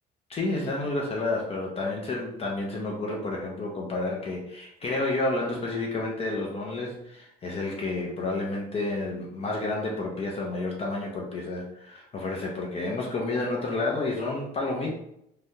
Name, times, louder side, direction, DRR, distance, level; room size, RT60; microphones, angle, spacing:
voice 1, 0.3-14.9, left 2 dB, 35° left, -1 dB, 0.6 m, -30 dB
3.2 x 2.3 x 2.7 m, 0.77 s
cardioid pair, 110°, 17 cm